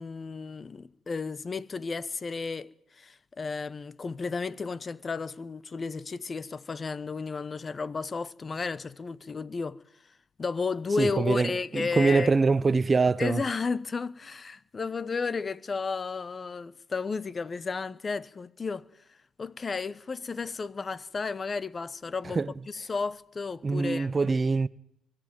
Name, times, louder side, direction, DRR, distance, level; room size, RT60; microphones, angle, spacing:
voice 1, 0.0-9.8 10.4-12.3 13.2-22.4 22.7-24.4, left 4 dB, 35° left, 1.0 m, -33 dB
voice 2, 11.0-13.4 22.2-22.5 23.6-24.7, right 4 dB, 35° right, 0.8 m, -24 dB
24.0 x 12.0 x 9.3 m
hypercardioid pair, 55°, 0 cm